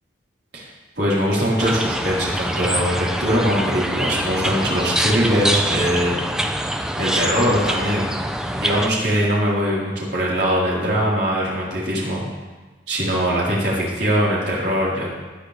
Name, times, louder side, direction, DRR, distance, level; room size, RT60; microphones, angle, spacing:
voice 1, 1.0-6.1 7.0-8.1 8.5-12.2 12.9-15.1, equal, 70° right, -6 dB, 4.1 m, -21 dB
sound 1, 1.6-8.9, equal, 5° right, 0.5 m, -25 dB
18.5 x 10.5 x 3.4 m, 1.2 s
head